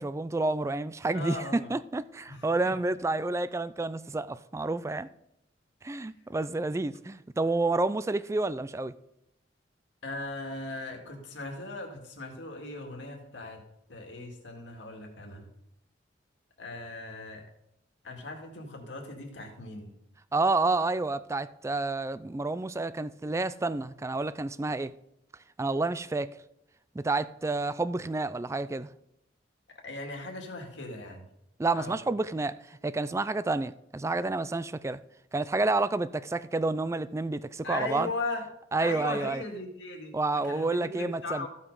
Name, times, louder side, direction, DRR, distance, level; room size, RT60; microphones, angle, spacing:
voice 1, 0.0-5.1 5.8-8.9 20.3-24.9 25.6-26.3 27.0-28.9 31.6-35.0 35.3-38.1 38.7-39.4 40.1-41.5, right 2 dB, 15° right, 0.3 m, -29 dB
voice 2, 1.1-1.7 2.3-2.8 10.0-13.6 13.9-15.5 16.6-17.4 18.0-19.9 29.8-31.3 31.7-32.0 37.6-38.5 38.8-41.5, left 2 dB, 85° left, 2.1 m, -38 dB
14.0 x 5.8 x 5.4 m
head